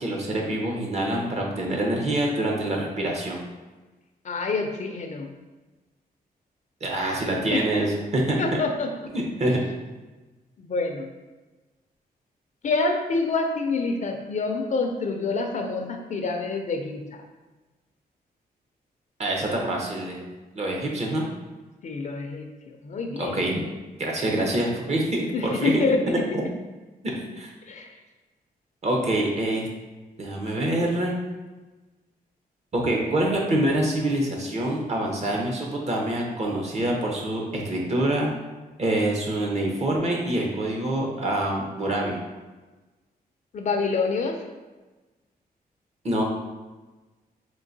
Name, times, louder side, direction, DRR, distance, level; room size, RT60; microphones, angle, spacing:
voice 1, 0.0-3.4 6.8-8.4 9.1-9.6 19.2-20.2 20.5-21.2 23.2-23.5 24.0-25.8 27.2-27.5 28.8-29.7 30.2-31.2 32.7-38.3 38.8-42.2 46.0-46.2, right 1 dB, 45° right, -1 dB, 0.8 m, -25 dB
voice 2, 4.2-5.3 7.5-7.6 8.4-8.9 10.6-11.1 12.6-17.0 21.8-22.5 22.8-23.3 25.3-26.2 27.7-27.9 43.5-44.4, left 3 dB, 50° left, 4 dB, 0.4 m, -27 dB
3.7 x 2.8 x 2.7 m, 1.2 s
cardioid pair, 100°, 16 cm